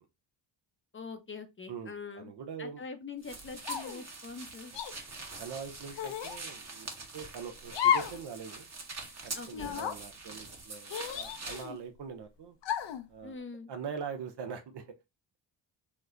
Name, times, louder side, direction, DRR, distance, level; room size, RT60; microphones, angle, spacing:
voice 1, 0.9-2.3 2.6-4.7 9.3-9.8 13.2-13.7, left 4 dB, 25° left, 0.6 m, -43 dB
voice 2, 1.7-2.8 5.4-8.7 9.2-12.6 13.1-13.3 13.7-14.9, right 6 dB, 60° right, 0.8 m, -43 dB
sound 1, 3.2-11.7, right 3 dB, 35° right, 1.1 m, -44 dB
sound 2, 3.6-4.0 4.7-4.9 5.9-6.4 7.7-8.2 8.6-8.7 9.5-10.0 10.9-11.8 12.6-13.0, left 9 dB, 65° left, 0.7 m, -32 dB
3.1 x 2.1 x 3.6 m
cardioid pair, 75°, 46 cm